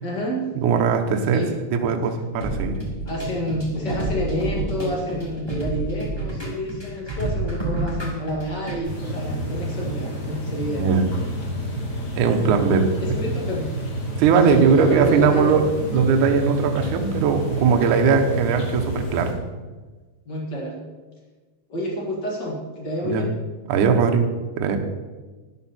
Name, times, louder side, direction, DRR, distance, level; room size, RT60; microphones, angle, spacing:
voice 1, 0.0-0.5 1.3-1.5 3.1-11.0 13.0-13.7 14.5-16.0 20.2-20.8 21.7-23.3, left 1 dB, 75° left, -1 dB, 0.9 m, -29 dB
voice 2, 0.6-1.4 1.7-2.8 7.2-7.3 10.7-11.0 12.2-12.9 14.2-15.7 15.9-19.3 23.0-23.2 23.7-24.3 24.6-24.8, right 6 dB, 75° right, 4 dB, 1.8 m, -19 dB
sound 1, 2.4-8.8, right 2 dB, 10° left, 1.9 m, -29 dB
sound 2, 8.8-19.3, equal, 40° left, 2.8 m, -30 dB
13.0 x 11.5 x 4.4 m, 1.3 s
omnidirectional pair, 5.1 m